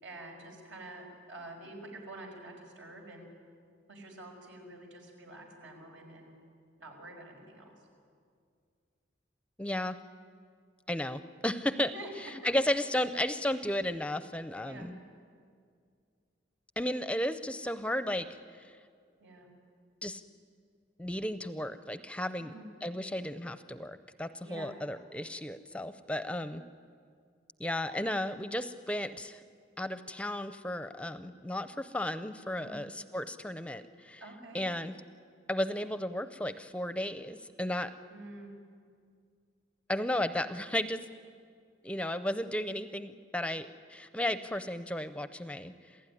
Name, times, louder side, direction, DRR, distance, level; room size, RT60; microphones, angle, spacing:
voice 1, 0.0-3.3 3.9-6.3 6.8-7.7 11.9-12.1 12.4-12.9 14.6-14.9 19.2-19.5 22.4-22.7 24.4-24.8 32.6-32.8 34.2-34.7 38.1-38.6, right 1 dB, 85° right, 2 dB, 5.5 m, -47 dB
voice 2, 9.6-10.0 10.9-11.9 12.2-15.0 16.8-18.3 18.5-18.8 20.0-20.2 21.0-22.5 22.8-26.6 27.6-29.4 29.8-34.2 34.5-35.0 35.5-37.9 39.9-41.1 41.8-46.0, left 1 dB, 5° left, 11 dB, 0.5 m, -34 dB
27.5 x 16.0 x 10.0 m, 2.2 s
head